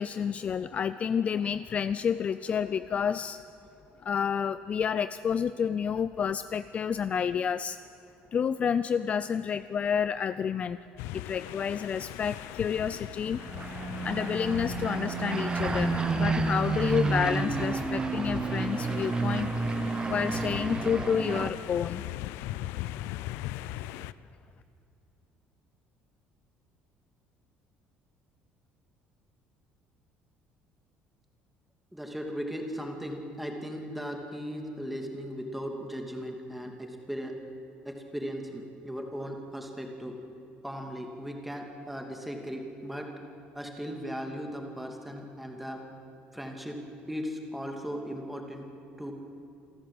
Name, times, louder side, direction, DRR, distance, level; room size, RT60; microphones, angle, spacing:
voice 1, 0.0-3.4 4.0-7.8 8.3-10.8 11.1-13.4 14.0-19.5 20.1-22.0, left 7 dB, 35° left, 14 dB, 0.4 m, -29 dB
sound 1, 11.0-24.1, left 15 dB, 85° left, 0.5 m, -39 dB
sound 2, 13.3-21.5, right 4 dB, 20° right, 0.9 m, -30 dB
voice 2, 31.9-37.3 37.8-40.1 40.6-43.1 43.5-45.8 46.3-46.8 47.1-48.6 49.0-49.1, equal, 5° right, 2 dB, 2.7 m, -37 dB
27.5 x 13.5 x 7.9 m, 2.9 s
cardioid pair, 130°, 4 cm